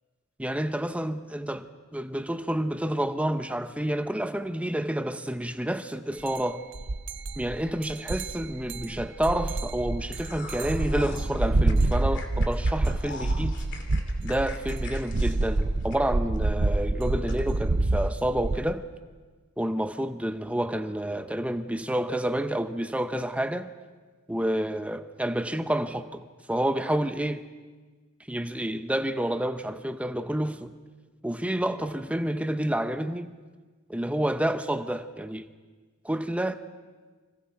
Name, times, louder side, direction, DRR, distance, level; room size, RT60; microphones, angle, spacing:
voice 1, 0.4-1.7 1.9-6.6 7.4-13.5 14.2-18.8 19.6-23.7 24.3-27.4 28.3-30.7 31.2-33.3 33.9-35.4 36.0-36.6, right 1 dB, 5° right, 0.7 m, -29 dB
sound 1, 6.3-6.4 6.7-18.6, right 2 dB, 55° right, 0.7 m, -27 dB
sound 2, 10.1-16.4 16.7-16.8 17.3-17.4, left 2 dB, 55° left, 2.5 m, -42 dB
30.0 x 25.5 x 4.7 m
head